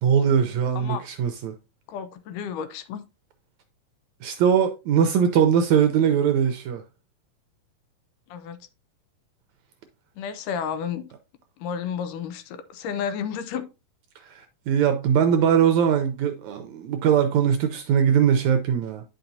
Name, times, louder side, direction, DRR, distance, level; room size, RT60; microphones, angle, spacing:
voice 1, 0.0-1.5 4.2-6.8 14.2-19.0, right 8 dB, 75° right, 1.7 m, -21 dB
voice 2, 1.9-3.0 8.3-8.6 10.2-11.1 11.6-13.7, left 7 dB, 80° left, 2.2 m, -31 dB
9.5 x 5.8 x 2.7 m
omnidirectional pair, 3.8 m